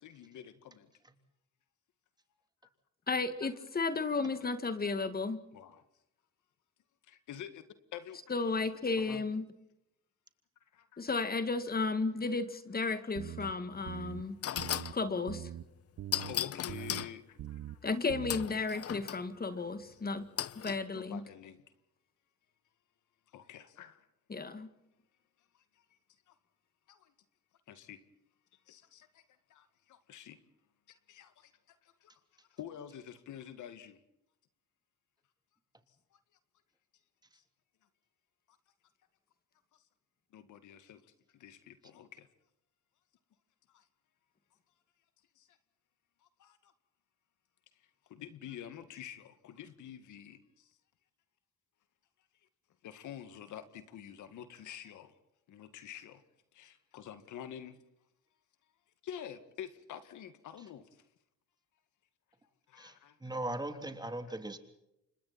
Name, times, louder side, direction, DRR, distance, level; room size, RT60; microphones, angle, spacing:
voice 1, 0.0-0.9 5.5-5.8 7.1-7.6 7.9-8.2 9.0-9.2 10.7-11.0 16.3-17.8 19.0-19.2 19.9-20.0 20.9-21.6 23.3-24.1 26.3-26.4 26.9-27.1 27.7-28.0 28.7-29.2 29.5-30.4 30.9-32.1 32.5-34.0 37.3-37.4 40.3-41.0 41.3-42.3 43.7-43.8 45.4-45.5 46.4-46.7 48.1-50.7 52.8-55.1 55.5-56.2 56.5-57.8 59.0-60.9 62.7-63.2, left 9 dB, 80° left, 2.1 m, -48 dB
voice 2, 3.1-5.4 8.3-9.5 11.0-14.4 14.9-15.5 17.8-20.3 20.6-21.2 24.3-24.7, left 3 dB, 30° left, 2.1 m, -33 dB
sound 1, 13.2-13.5 13.9-14.2 14.6-14.9 15.3-15.6 16.0-16.3 16.7-17.0 17.4-17.8 18.1-18.5, right 12 dB, 65° right, 1.1 m, -42 dB
sound 2, 13.7-13.8 14.4-15.0 16.1-17.1 18.3-19.2 20.4-20.8, left 10 dB, 50° left, 0.8 m, -36 dB
voice 3, 62.8-64.6, right 1 dB, 15° right, 3.3 m, -39 dB
29.5 x 25.5 x 4.3 m
cardioid pair, 90°, 30 cm